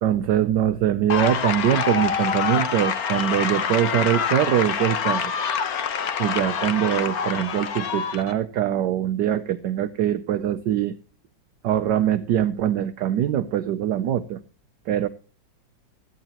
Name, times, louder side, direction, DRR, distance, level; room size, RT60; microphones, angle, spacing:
voice 1, 0.0-5.3 6.2-10.9 11.6-14.4 14.9-15.1, right 11 dB, 70° right, 9 dB, 1.2 m, -23 dB
sound 1, 1.1-8.3, left 7 dB, 55° left, 1.4 m, -26 dB
16.5 x 12.0 x 2.9 m, 0.35 s
omnidirectional pair, 2.1 m